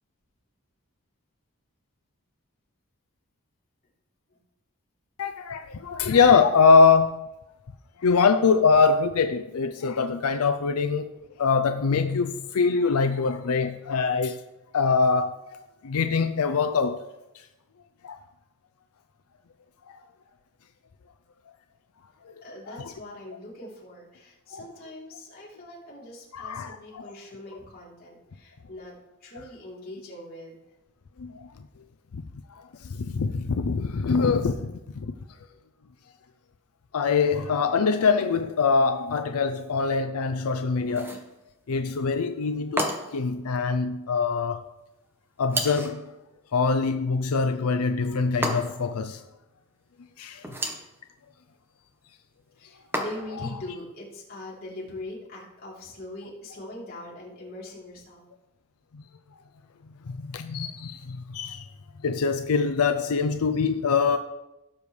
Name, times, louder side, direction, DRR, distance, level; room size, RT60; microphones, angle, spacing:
voice 1, 5.2-7.2 8.0-11.1 11.4-14.4 14.7-17.0 17.4-17.5 18.0-18.2 22.7-22.9 24.5-24.6 26.3-27.0 31.2-31.5 32.5-35.1 36.9-41.2 41.7-44.6 45.4-46.0 46.5-49.2 50.2-50.7 53.4-53.5 58.9-59.0 60.1-61.7 62.0-64.2, left 5 dB, 90° left, 8 dB, 0.5 m, -23 dB
voice 2, 22.4-28.9 29.2-30.5 52.5-58.3, left 1 dB, 45° left, -5 dB, 3.3 m, -42 dB
sound 1, 40.9-41.3 42.8-43.3 45.5-46.0 48.4-49.0 50.4-50.9 52.9-53.5, right 1 dB, 10° right, 1.0 m, -31 dB
16.5 x 7.0 x 3.3 m, 0.96 s
head